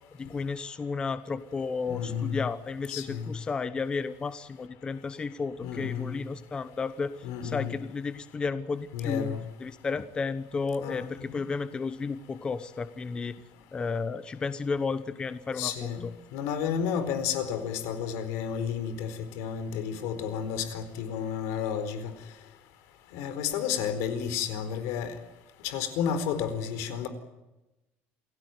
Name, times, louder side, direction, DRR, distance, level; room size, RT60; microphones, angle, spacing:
voice 1, 0.2-13.4 13.7-16.1, left 4 dB, 20° left, 13 dB, 1.0 m, -33 dB
voice 2, 1.9-2.4 2.9-3.3 5.6-6.1 7.2-7.7 8.9-9.4 10.8-11.3 15.6-16.1 16.3-22.1 23.1-25.1 25.6-27.1, left 8 dB, 85° left, 11 dB, 4.5 m, -31 dB
28.5 x 17.0 x 9.4 m, 1.0 s
cardioid pair, 175°, 5 cm